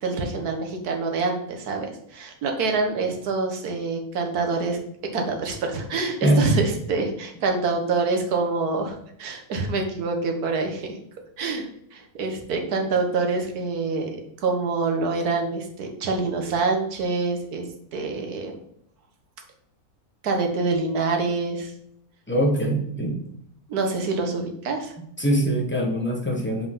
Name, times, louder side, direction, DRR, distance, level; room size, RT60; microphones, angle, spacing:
voice 1, 0.0-4.8 5.1-11.0 11.4-17.7 17.9-18.5 20.2-21.7 23.7-24.9, right 3 dB, 75° right, 3 dB, 1.7 m, -26 dB
voice 2, 22.3-23.2 25.2-26.7, right 1 dB, 10° left, 0 dB, 1.0 m, -22 dB
5.6 x 4.6 x 5.4 m, 0.74 s
omnidirectional pair, 1.7 m